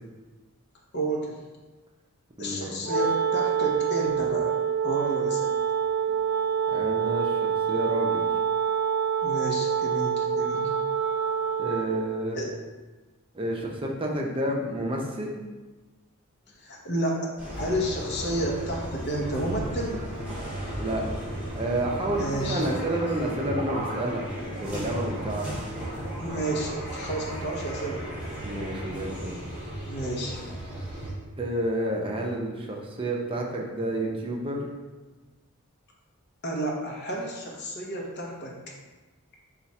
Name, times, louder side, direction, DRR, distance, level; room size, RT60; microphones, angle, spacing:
voice 1, 0.9-1.4 2.4-4.5 4.8-5.5 9.2-10.7 12.3-12.5 16.6-17.3 17.6-20.1 22.2-22.7 26.2-28.0 29.8-30.4 36.4-38.6, right 1 dB, 55° left, -2 dB, 0.8 m, -31 dB
voice 2, 2.4-2.8 6.7-7.4 7.7-8.3 11.6-12.4 13.3-15.3 20.8-21.0 21.5-25.5 28.4-29.4 31.4-34.6, right 1 dB, 25° right, -1 dB, 0.6 m, -30 dB
Wind instrument woodwind instrument, 2.8-12.1, right 7 dB, 70° right, 0.6 m, -26 dB
sound 1, 17.4-31.1, right 1 dB, 5° right, 1.4 m, -35 dB
4.5 x 2.4 x 4.1 m, 1.2 s
head